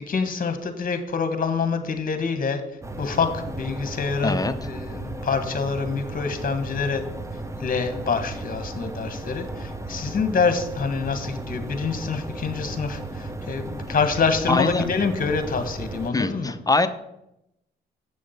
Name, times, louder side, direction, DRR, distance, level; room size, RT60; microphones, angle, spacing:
voice 1, 0.1-2.6 3.0-7.0 7.6-16.5, left 5 dB, 45° left, 8 dB, 1.5 m, -26 dB
sound 1, 2.8-16.1, right 2 dB, 15° right, 1.1 m, -35 dB
voice 2, 4.2-4.5 14.5-14.9 16.1-16.9, left 2 dB, 20° left, 10 dB, 0.8 m, -22 dB
7.5 x 6.3 x 5.8 m, 0.84 s
supercardioid pair, 65°, 19 cm